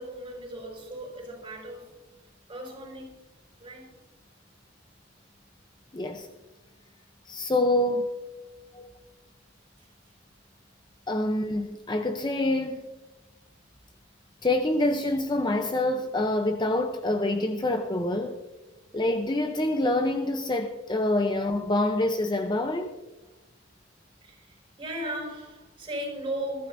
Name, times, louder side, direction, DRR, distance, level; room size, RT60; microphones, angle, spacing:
voice 1, 0.0-2.0 2.5-3.2 3.6-4.0 8.4-8.7 9.8-9.9 23.2-23.3 24.2-26.7, right 1 dB, 25° right, 5.7 m, -37 dB
voice 2, 5.9-6.3 7.3-8.1 8.7-9.0 11.1-12.9 14.4-18.4 18.9-22.9, left 1 dB, 25° left, 0.7 m, -26 dB
21.5 x 13.5 x 2.7 m
head